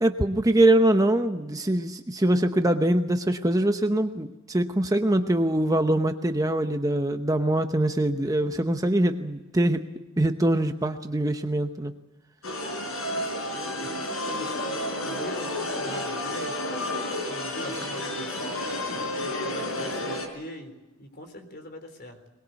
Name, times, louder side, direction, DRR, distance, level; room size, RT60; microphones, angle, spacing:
voice 1, 0.0-9.8 10.2-11.9, right 1 dB, 15° right, 6 dB, 0.9 m, -23 dB
sound 1, 12.4-20.3, left 1 dB, 75° left, 5.0 m, -31 dB
voice 2, 13.1-16.6 17.2-20.7 21.0-22.2, left 1 dB, 50° left, 7 dB, 3.9 m, -42 dB
22.0 x 21.5 x 8.3 m, 1.1 s
head